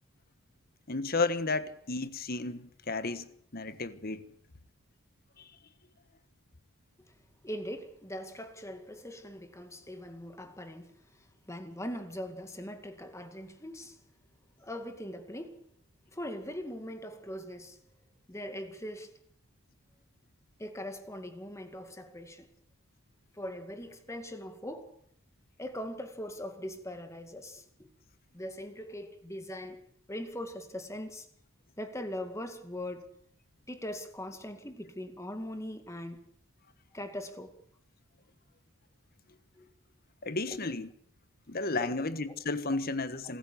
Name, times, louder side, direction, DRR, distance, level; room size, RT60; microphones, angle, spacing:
voice 1, 0.9-3.3 3.5-4.2 5.4-5.5 40.2-40.9 41.5-43.4, left 3 dB, 45° left, 1.4 m, -33 dB
voice 2, 7.4-14.0 14.6-15.6 16.1-17.8 18.3-19.1 20.6-22.5 23.3-24.9 25.6-27.9 28.3-29.8 30.1-31.3 31.8-33.1 33.7-36.3 36.9-37.5 39.6-39.7 40.5-40.6 41.8-42.0, equal, 15° left, 2.1 m, -41 dB
26.5 x 14.5 x 8.6 m
head